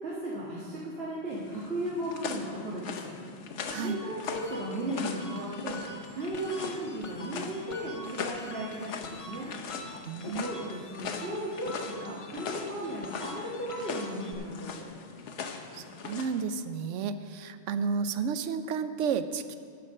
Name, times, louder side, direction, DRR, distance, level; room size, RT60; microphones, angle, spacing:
voice 1, 0.0-3.1 3.8-5.8 6.1-9.5 10.4-11.7 12.0-14.9, right 1 dB, 60° right, -7 dB, 2.0 m, -36 dB
sound 1, 1.3-16.4, left 5 dB, 80° left, 1.1 m, -40 dB
sound 2, 3.7-14.3, left 1 dB, 35° left, 0.7 m, -46 dB
voice 2, 3.7-4.0 10.1-10.6 15.7-19.6, right 6 dB, 85° right, 11 dB, 0.9 m, -32 dB
10.5 x 7.0 x 6.3 m, 2.3 s
omnidirectional pair, 1.2 m